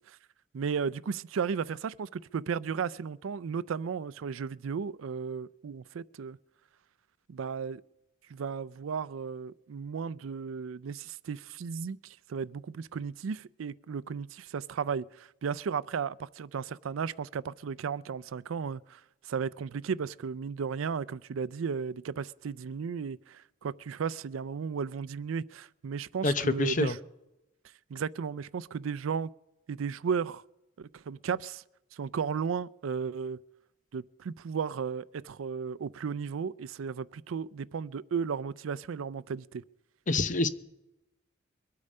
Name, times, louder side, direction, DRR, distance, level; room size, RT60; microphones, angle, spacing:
voice 1, 0.5-6.4 7.3-7.8 8.3-27.0 27.9-29.3 29.7-30.4 30.8-31.6 31.9-33.4 33.9-39.6, right 6 dB, 90° right, 0.4 m, -34 dB
voice 2, 26.2-26.9 40.1-40.5, left 2 dB, 40° left, 0.7 m, -26 dB
23.0 x 8.6 x 5.4 m
head